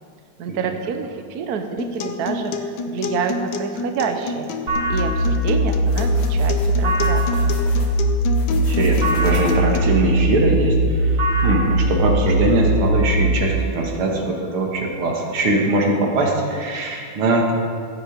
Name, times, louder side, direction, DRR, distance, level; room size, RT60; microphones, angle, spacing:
voice 1, 0.4-4.5 4.9-7.5, right 6 dB, 60° right, 6 dB, 1.0 m, -28 dB
Acoustic guitar, 1.8-9.8, left 4 dB, 65° left, 1.2 m, -29 dB
sound 1, 4.7-13.3, right 1 dB, 40° right, 2.6 m, -20 dB
sound 2, 5.8-7.9 8.3-9.8, left 2 dB, 35° left, 1.8 m, -39 dB
voice 2, 8.5-17.5, right 2 dB, 75° right, 1 dB, 2.4 m, -21 dB
14.0 x 8.1 x 5.1 m, 2.2 s
omnidirectional pair, 2.4 m